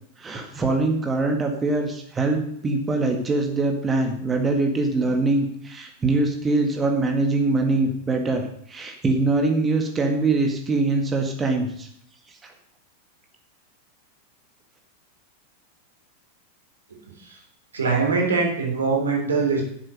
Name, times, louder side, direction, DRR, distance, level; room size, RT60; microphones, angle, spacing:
voice 1, 0.2-8.4 8.7-11.9 12.4-12.5, right 3 dB, 15° right, 3 dB, 1.9 m, -23 dB
voice 2, 17.7-19.6, right 4 dB, 70° right, 0 dB, 3.6 m, -22 dB
10.5 x 7.6 x 6.6 m, 0.67 s
figure-of-eight pair, 90°, 0 cm